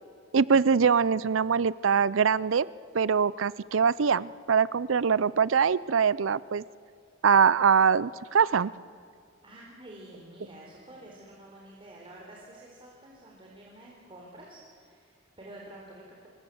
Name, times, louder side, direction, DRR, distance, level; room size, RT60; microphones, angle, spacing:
voice 1, 0.3-2.7 2.9-6.6 7.2-8.7, right 6 dB, 75° right, 20 dB, 0.5 m, -23 dB
voice 2, 9.4-16.3, right 1 dB, 25° right, -3 dB, 4.3 m, -49 dB
26.5 x 24.0 x 7.9 m, 2.5 s
head